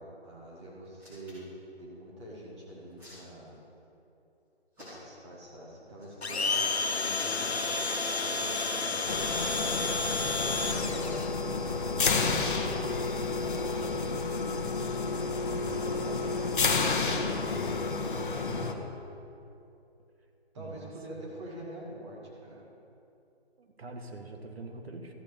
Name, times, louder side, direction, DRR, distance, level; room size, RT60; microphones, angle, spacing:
voice 1, 0.0-1.5 1.8-3.6 4.8-9.3 10.3-14.2 15.7-16.5 16.8-17.5 20.5-22.6, right 1 dB, 25° right, -5 dB, 2.0 m, -46 dB
Hands, 0.8-1.6 2.6-3.8 4.7-5.3 5.9-6.2, left 1 dB, 5° right, 2.7 m, -53 dB
Domestic sounds home sounds, 6.2-11.3, left 4 dB, 75° left, 1.0 m, -31 dB
sound 1, 9.1-18.7, left 4 dB, 50° left, 1.0 m, -30 dB
voice 2, 15.5-16.2 18.3-18.9 20.5-20.9 23.6-25.1, right 3 dB, 65° right, 3 dB, 1.7 m, -45 dB
13.5 x 7.7 x 5.1 m, 2.8 s
figure-of-eight pair, 150°, 33 cm